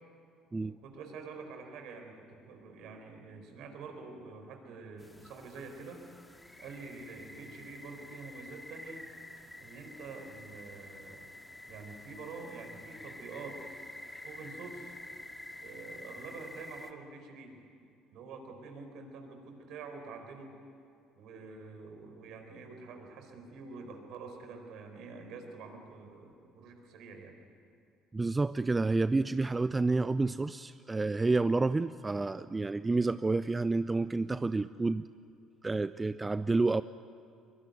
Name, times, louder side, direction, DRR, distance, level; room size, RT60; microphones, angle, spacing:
voice 1, 0.5-6.0 6.6-9.1 9.6-11.3 11.7-13.8 14.2-14.9 15.6-17.6 18.1-20.5 21.2-27.4, right 4 dB, 65° right, 4 dB, 4.5 m, -47 dB
sound 1, 5.0-16.9, left 1 dB, 10° left, 2.4 m, -49 dB
voice 2, 28.1-35.0 35.6-36.8, right 3 dB, 20° right, 15 dB, 0.5 m, -29 dB
23.5 x 23.0 x 9.4 m, 2.5 s
hypercardioid pair, 55°, 0 cm